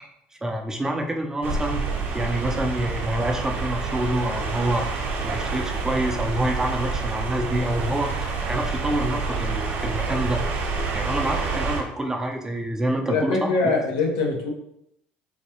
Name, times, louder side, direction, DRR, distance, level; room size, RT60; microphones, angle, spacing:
voice 1, 0.4-1.8 2.1-4.8 5.2-10.4 10.9-13.5, right 1 dB, 15° right, 2 dB, 0.5 m, -27 dB
sound 1, 1.4-11.8, right 4 dB, 55° right, 0.8 m, -28 dB
voice 2, 13.1-14.5, left 3 dB, 85° left, 1 dB, 0.8 m, -23 dB
4.0 x 2.2 x 2.9 m, 0.77 s
supercardioid pair, 90°, 4 cm